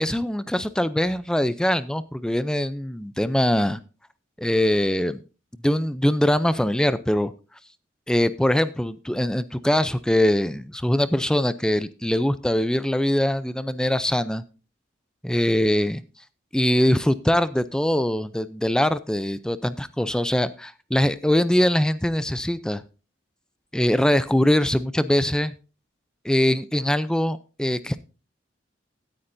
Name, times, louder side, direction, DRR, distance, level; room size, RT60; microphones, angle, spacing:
voice 1, 0.0-3.8 4.4-5.2 5.6-7.3 8.1-14.4 15.2-16.0 16.5-22.8 23.7-25.5 26.2-28.0, left 1 dB, 5° left, 14 dB, 0.5 m, -22 dB
16.5 x 9.8 x 2.6 m, 0.33 s
head